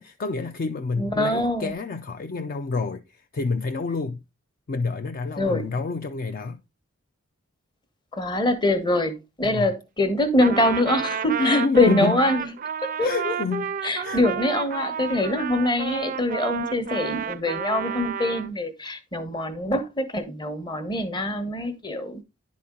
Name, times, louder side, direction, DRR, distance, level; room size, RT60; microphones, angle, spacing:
voice 1, 0.0-4.2 4.7-6.6 9.4-9.7 11.4-12.2 13.0-13.7 14.0-14.2, left 4 dB, 40° left, 0.4 m, -28 dB
voice 2, 1.0-1.8 5.4-5.7 8.1-12.5 13.0-13.3 13.8-22.2, left 1 dB, 20° left, 0.9 m, -24 dB
Trumpet, 10.4-18.5, right 7 dB, 40° right, 0.4 m, -31 dB
10.5 x 4.2 x 3.6 m
head